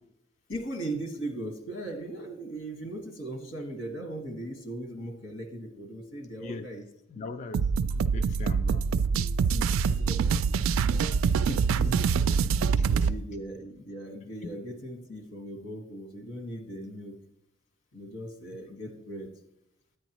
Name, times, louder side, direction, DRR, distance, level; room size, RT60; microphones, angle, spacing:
voice 1, 0.5-6.8 9.1-10.6 11.5-12.1 12.8-17.2 17.9-19.3, right 1 dB, 85° left, 1.7 m, -38 dB
voice 2, 7.1-8.9 11.5-12.3 12.8-12.9 14.4-14.5, left 3 dB, 35° left, 0.4 m, -40 dB
sound 1, 7.5-13.2, right 6 dB, 80° right, 0.3 m, -25 dB
10.0 x 8.6 x 3.0 m
head